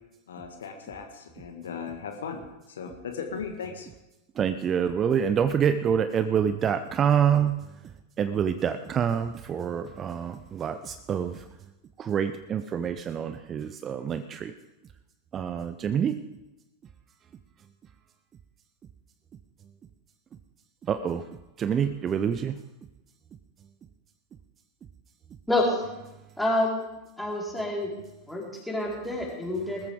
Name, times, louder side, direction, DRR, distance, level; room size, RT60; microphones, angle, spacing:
voice 1, 0.3-2.4 2.7-3.9, left 6 dB, 65° left, 5 dB, 1.7 m, -37 dB
voice 2, 4.4-7.6 8.2-11.4 12.0-14.5 15.3-16.2 20.9-21.3 21.6-22.6, right 8 dB, 25° right, 11 dB, 0.6 m, -26 dB
voice 3, 25.5-25.8 26.4-26.8 27.2-27.9 28.3-29.9, left 1 dB, 5° left, -3 dB, 4.5 m, -27 dB
20.0 x 14.0 x 3.7 m, 0.99 s
figure-of-eight pair, 90°, 0 cm